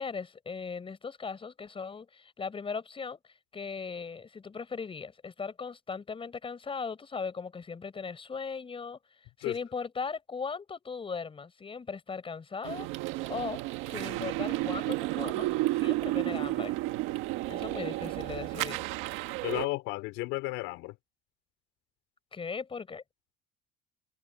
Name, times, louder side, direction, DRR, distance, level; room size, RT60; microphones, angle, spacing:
voice 1, 0.0-3.2 3.5-9.0 9.4-12.9 13.3-13.6 13.9-16.8 17.5-18.9 22.3-23.0, left 5 dB, 25° left, 5.1 m, -38 dB
sound 1, 12.6-19.7, right 18 dB, 80° right, 1.7 m, -32 dB
voice 2, 19.4-21.0, left 21 dB, 80° left, 4.1 m, -33 dB
supercardioid pair, 100°, 20 cm